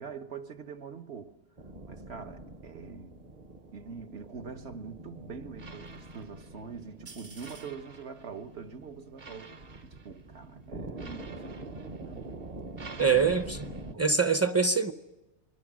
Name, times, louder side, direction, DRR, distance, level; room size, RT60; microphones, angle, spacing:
voice 1, 0.0-1.4 1.9-3.2 3.7-12.4 13.2-13.3 13.9-14.1, right 5 dB, 65° right, 1.4 m, -44 dB
sound 1, 1.6-13.9, right 2 dB, 40° right, 0.9 m, -44 dB
voice 2, 13.0-14.9, right 5 dB, 15° right, 0.6 m, -25 dB
27.5 x 21.5 x 6.3 m
omnidirectional pair, 1.2 m